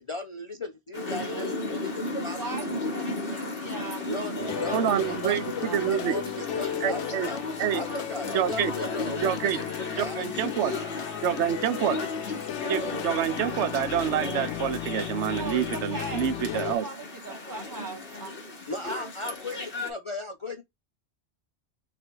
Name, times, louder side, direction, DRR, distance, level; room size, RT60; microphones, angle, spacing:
voice 1, 0.0-2.7 4.1-7.4 7.7-9.5 9.9-10.3 18.7-20.6, left 2 dB, 40° left, 0.5 m, -36 dB
sound 1, 0.9-19.9, left 2 dB, 55° left, 1.6 m, -35 dB
voice 2, 2.3-6.2 15.4-18.3, right 3 dB, 20° right, 1.1 m, -40 dB
sound 2, 4.4-16.8, left 9 dB, 90° left, 0.9 m, -35 dB
voice 3, 4.7-6.1 6.8-7.3 7.6-7.8 8.3-8.7 9.2-9.6 10.1-10.7 11.2-12.0 12.7-16.9, right 10 dB, 90° right, 0.9 m, -27 dB
4.0 x 3.3 x 2.9 m
omnidirectional pair, 1.1 m